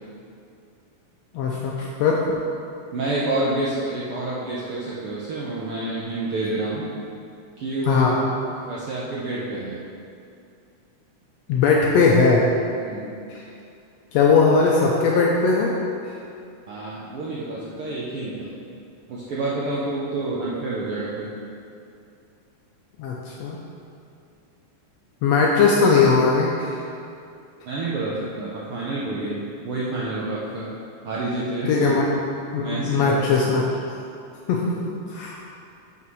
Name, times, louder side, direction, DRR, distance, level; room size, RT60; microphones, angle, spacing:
voice 1, 1.3-2.2 7.9-8.2 11.5-12.4 13.3-13.4 14.1-15.7 23.0-23.6 25.2-26.8 31.7-32.0 32.5-33.7 34.5-35.4, left 4 dB, 75° left, -2 dB, 1.6 m, -19 dB
voice 2, 2.9-6.9 7.6-8.3 8.7-9.8 12.8-13.2 16.7-18.5 19.1-21.3 27.7-30.7 31.0-32.0 32.6-33.5, right 2 dB, 70° right, -7 dB, 1.3 m, -28 dB
5.9 x 5.8 x 6.2 m, 2.5 s
omnidirectional pair, 3.6 m